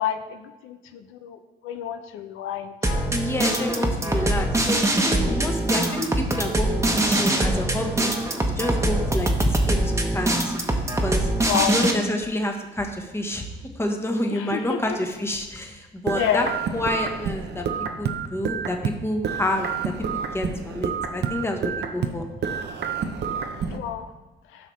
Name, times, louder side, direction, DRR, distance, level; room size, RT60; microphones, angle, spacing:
voice 1, 0.0-1.4 1.6-3.1 11.5-11.7 14.5-15.0 16.1-16.5 23.7-24.1, left 9 dB, 90° left, 8 dB, 0.5 m, -28 dB
sound 1, 2.8-11.9, right 1 dB, 15° right, 0.9 m, -23 dB
voice 2, 3.1-6.7 7.0-8.1 8.6-10.5 11.0-11.3 11.7-13.5 13.8-16.5 16.7-17.6 18.0-22.3, left 1 dB, 10° left, 3 dB, 1.1 m, -28 dB
sound 2, 16.1-19.0 19.2-22.2 22.4-23.8, right 6 dB, 60° right, 0.6 m, -29 dB
10.5 x 5.7 x 3.2 m, 1.1 s
cardioid pair, 90°, 20 cm